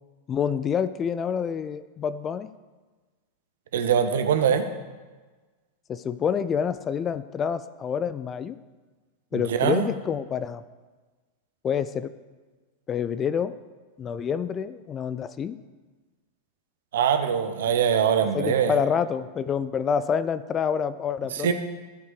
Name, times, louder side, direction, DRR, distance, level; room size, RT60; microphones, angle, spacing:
voice 1, 0.3-2.5 5.9-8.6 9.3-10.6 11.6-12.1 12.9-13.5 14.0-15.6 18.3-21.5, left 7 dB, 25° left, 14 dB, 0.4 m, -27 dB
voice 2, 3.7-4.6 9.3-9.8 16.9-18.7 21.3-21.5, right 8 dB, 60° right, 8 dB, 0.8 m, -22 dB
14.0 x 5.4 x 5.0 m, 1.3 s
figure-of-eight pair, 90°, 0 cm